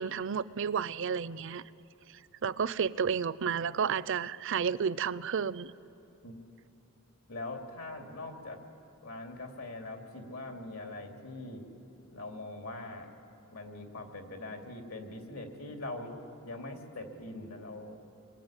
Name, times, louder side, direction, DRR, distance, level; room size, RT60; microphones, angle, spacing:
voice 1, 0.0-1.6 2.4-5.7, right 6 dB, 60° right, 18 dB, 0.5 m, -31 dB
voice 2, 7.3-8.6 9.0-11.6 12.1-13.1 13.5-16.1 16.4-18.0, left 2 dB, 90° left, 3 dB, 3.1 m, -42 dB
26.5 x 22.0 x 9.1 m, 2.8 s
head